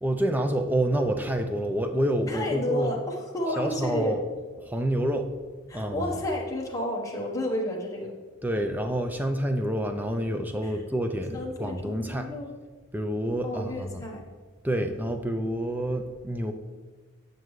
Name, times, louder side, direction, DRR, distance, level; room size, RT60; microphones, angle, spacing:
voice 1, 0.0-2.9 3.6-4.2 4.6-5.3 5.7-6.1 8.4-12.3 12.9-14.1 14.6-16.5, right 1 dB, 10° right, 6 dB, 0.4 m, -28 dB
voice 2, 2.3-4.2 5.7-8.1 10.6-10.7 11.3-12.5 13.4-14.2, left 1 dB, 15° left, -2 dB, 1.0 m, -31 dB
8.8 x 6.5 x 3.1 m, 1.4 s
head